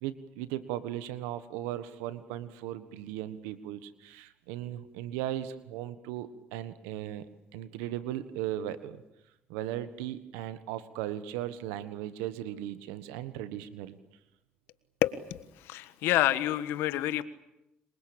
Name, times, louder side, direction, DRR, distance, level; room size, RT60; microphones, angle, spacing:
voice 1, 0.0-7.2 7.5-9.0 9.5-14.0, right 12 dB, 90° right, 13 dB, 1.4 m, -37 dB
voice 2, 15.0-15.4 15.7-17.2, left 14 dB, 80° left, 14 dB, 1.4 m, -28 dB
27.5 x 23.0 x 8.7 m, 0.89 s
supercardioid pair, 65°, 4 cm